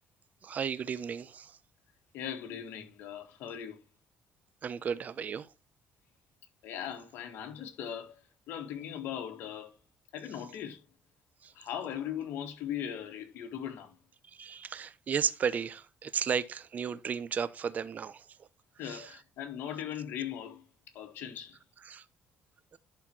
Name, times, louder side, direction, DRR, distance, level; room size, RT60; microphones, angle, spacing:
voice 1, 0.4-1.6 4.6-5.5 11.4-11.5 14.3-18.3 18.8-19.1 21.8-22.0 22.7-22.8, right 7 dB, 45° right, 0.8 m, -34 dB
voice 2, 2.1-3.8 6.6-8.2 8.5-9.7 10.1-10.8 11.6-14.0 18.8-20.7 20.9-21.6, left 9 dB, 80° left, 1.9 m, -39 dB
11.0 x 4.5 x 4.6 m
cardioid pair, 85°, 4 cm